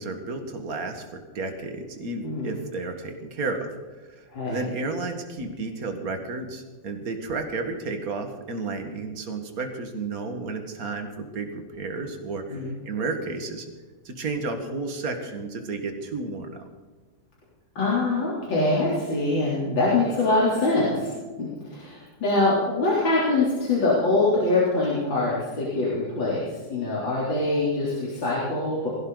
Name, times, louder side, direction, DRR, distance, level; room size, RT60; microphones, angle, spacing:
voice 1, 0.0-3.7 4.2-13.7 14.1-16.7, right 3 dB, 50° right, 5 dB, 2.1 m, -32 dB
voice 2, 4.3-4.6 12.5-12.7 17.8-21.1 21.4-26.4 26.7-28.9, left 2 dB, 80° left, -7 dB, 4.3 m, -24 dB
20.0 x 16.5 x 4.0 m, 1.4 s
omnidirectional pair, 2.0 m